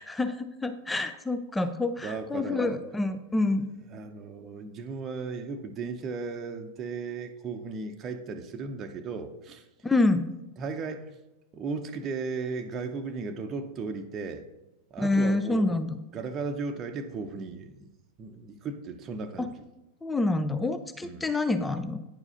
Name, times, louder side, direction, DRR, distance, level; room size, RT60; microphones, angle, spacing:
voice 1, 0.0-3.7 9.8-10.3 15.0-15.9 19.4-19.5 20.0-22.0, left 2 dB, 10° left, 10 dB, 0.5 m, -27 dB
voice 2, 2.0-2.8 3.9-9.7 10.6-11.1 11.5-14.4 14.9-15.8 16.1-17.9 18.2-19.5 21.0-21.3, right 4 dB, 30° right, 5 dB, 0.8 m, -36 dB
9.6 x 4.9 x 5.0 m, 0.98 s
figure-of-eight pair, 90°, 0 cm